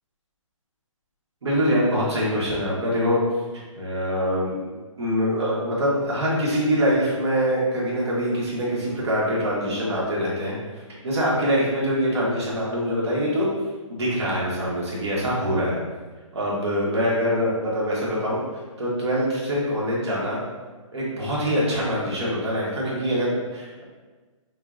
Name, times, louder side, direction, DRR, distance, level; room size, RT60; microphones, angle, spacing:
voice 1, 1.4-3.2 3.7-4.7 5.0-10.6 11.0-13.5 13.9-15.8 16.3-18.4 18.8-20.4 20.9-23.8, equal, 50° right, -6 dB, 1.2 m, -24 dB
5.3 x 2.1 x 2.4 m, 1.3 s
hypercardioid pair, 175°, 18 cm